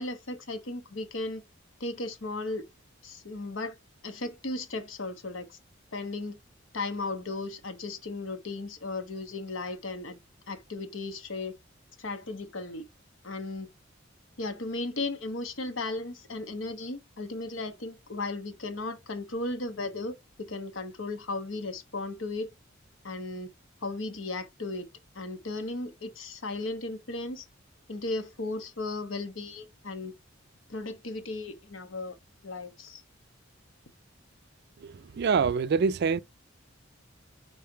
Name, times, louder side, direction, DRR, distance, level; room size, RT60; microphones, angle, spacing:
voice 1, 0.0-1.4 1.8-2.6 3.0-3.7 4.0-5.6 5.9-6.4 6.7-10.2 10.5-11.5 12.0-12.9 13.2-13.7 14.4-22.5 23.0-23.5 23.8-24.9 25.1-27.4 27.9-30.1 30.7-32.2 32.4-33.0, left 2 dB, 70° left, 1.1 m, -35 dB
voice 2, 35.2-36.2, right 5 dB, 55° right, 0.4 m, -24 dB
5.6 x 4.0 x 4.4 m
head